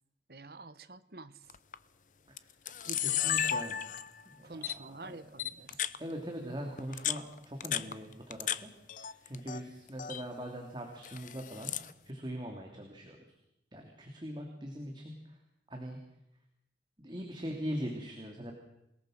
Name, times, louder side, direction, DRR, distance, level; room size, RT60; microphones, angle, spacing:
voice 1, 0.3-1.5 2.8-3.3 4.4-5.9, right 2 dB, 60° right, 13 dB, 1.2 m, -48 dB
Camera, 1.5-1.8 2.4-2.5 2.7-4.2 4.6-4.8 5.4-6.0 6.8-8.6 8.9-9.6 9.9-10.2 11.0-11.9, left 10 dB, 45° left, 0.8 m, -33 dB
voice 2, 3.0-3.8 4.2-5.2 5.7-8.7 9.0-11.7 12.1-13.2 13.7-15.4 15.7-16.0 17.0-18.5, equal, 25° right, 1 dB, 2.9 m, -41 dB
28.0 x 18.5 x 6.6 m, 0.83 s
head